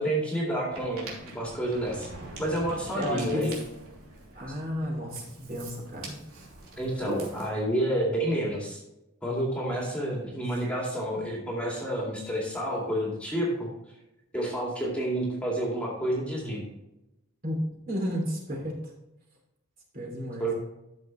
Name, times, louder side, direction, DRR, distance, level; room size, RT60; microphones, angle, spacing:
voice 1, 0.0-2.1 2.4-3.5 6.8-8.8 9.2-13.7 14.3-16.6 20.4-20.5, right 1 dB, 5° left, -3 dB, 2.3 m, -29 dB
Ocean, 0.7-7.5, right 1 dB, 85° right, 3.0 m, -42 dB
voice 2, 2.9-3.6 4.3-6.2 10.2-10.4 17.4-17.6 17.9-18.9 19.9-20.5, equal, 40° right, -2 dB, 2.9 m, -32 dB
13.0 x 6.9 x 3.2 m, 0.93 s
head